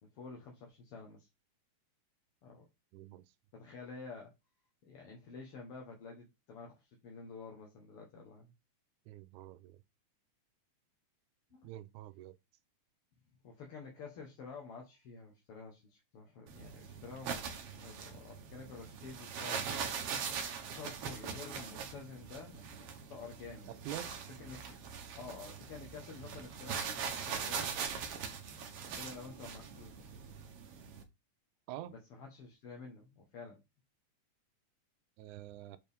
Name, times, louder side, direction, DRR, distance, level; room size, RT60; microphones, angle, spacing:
voice 1, 0.0-1.3 2.4-2.7 3.5-4.3 4.9-8.5 11.5-11.7 13.4-19.9 20.7-23.9 24.4-27.8 29.0-30.1 31.9-33.6, left 4 dB, 60° left, 1.8 m, -50 dB
voice 2, 2.9-3.2 9.1-9.8 11.6-12.4 23.7-24.2 31.7-32.0 35.2-35.8, right 13 dB, 85° right, 2.1 m, -46 dB
sound 1, 16.5-31.0, right 6 dB, 65° right, 1.7 m, -42 dB
6.7 x 4.4 x 3.5 m
omnidirectional pair, 3.4 m